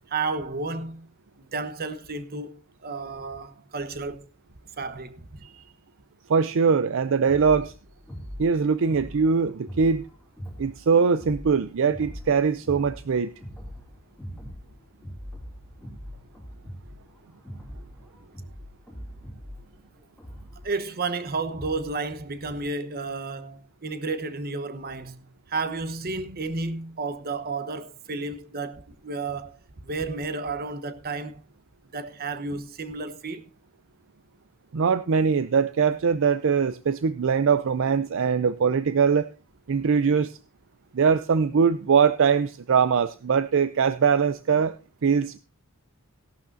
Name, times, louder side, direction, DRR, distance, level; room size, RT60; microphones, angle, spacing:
voice 1, 0.1-1.1 1.4-4.2 4.8-5.4 14.3-14.4 20.6-25.2 25.5-29.5 29.8-31.4 31.9-33.5, right 3 dB, 45° right, 1.0 m, -32 dB
voice 2, 6.3-7.7 8.4-10.1 10.6-13.3 34.7-39.3 39.7-40.4 40.9-45.4, right 6 dB, 60° right, 0.5 m, -22 dB
sound 1, 7.2-22.0, equal, ahead, 2.7 m, -42 dB
16.0 x 11.5 x 2.6 m
head